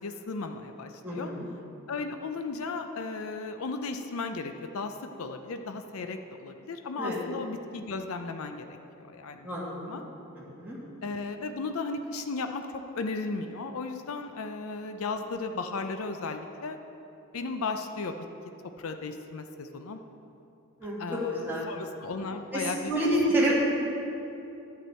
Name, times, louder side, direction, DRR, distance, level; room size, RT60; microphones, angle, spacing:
voice 1, 0.0-1.3 1.9-8.7 9.1-9.5 9.9-10.0 11.0-12.7 12.9-16.8 17.3-18.1 18.8-20.0 20.8-22.9, left 3 dB, 80° left, 7 dB, 0.5 m, -35 dB
voice 2, 1.0-1.5 7.0-7.2 9.4-10.1 10.6-10.8 20.8-21.0 21.3-21.7 22.5-23.5, right 1 dB, 10° right, -8 dB, 1.9 m, -28 dB
11.0 x 8.2 x 4.4 m, 2.9 s
head